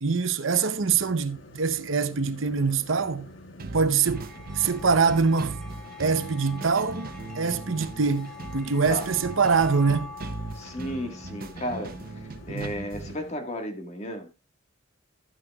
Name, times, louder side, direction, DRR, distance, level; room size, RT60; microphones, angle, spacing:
voice 1, 0.0-3.3 3.7-4.3 4.5-5.6 6.0-10.1 12.5-12.7, right 5 dB, 80° right, 0.8 m, -24 dB
sound 1, 0.7-13.3, left 1 dB, 70° left, 1.2 m, -48 dB
sound 2, 3.6-13.2, right 3 dB, 45° right, 0.7 m, -39 dB
sound 3, 3.9-12.5, left 4 dB, 5° left, 1.9 m, -45 dB
voice 2, 10.5-12.0 12.5-14.3, equal, 35° left, 1.7 m, -33 dB
12.5 x 9.0 x 2.3 m
head